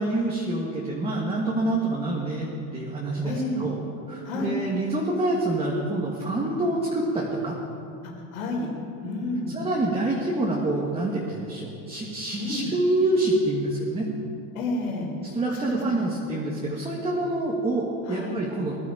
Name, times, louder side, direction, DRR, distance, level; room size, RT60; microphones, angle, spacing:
voice 1, 0.0-3.8 4.1-7.5 9.5-14.1 15.3-18.8, right 2 dB, 15° right, -3 dB, 1.6 m, -26 dB
voice 2, 3.2-3.6 4.2-4.6 8.0-8.7 9.0-9.5 12.4-12.7 14.5-15.1 15.6-16.1 18.1-18.3, left 2 dB, 90° left, -1 dB, 4.4 m, -30 dB
19.5 x 11.5 x 5.0 m, 2.7 s
supercardioid pair, 140°, 42 cm